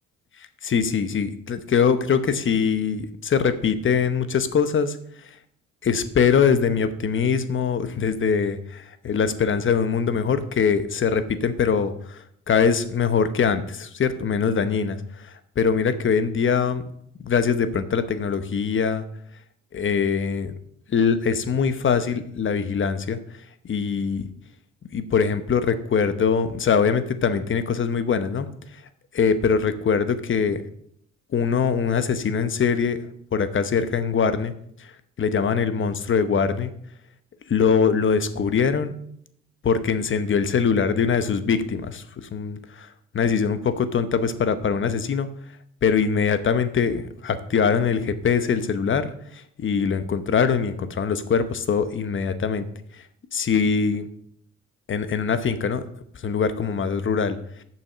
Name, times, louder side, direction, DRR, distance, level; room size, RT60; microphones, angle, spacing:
voice 1, 0.6-5.0 5.2-5.3 5.8-16.8 17.2-19.0 19.7-20.5 20.9-23.2 23.7-24.3 24.9-28.5 29.1-30.6 31.3-33.0 33.3-34.5 35.2-36.7 37.5-38.9 39.6-42.9 43.1-45.3 45.8-52.7 52.9-53.0 53.3-54.1 54.9-55.8 56.2-57.4, left 6 dB, 40° left, 12 dB, 0.9 m, -22 dB
6.9 x 5.9 x 6.7 m, 0.69 s
cardioid pair, 90°, 30 cm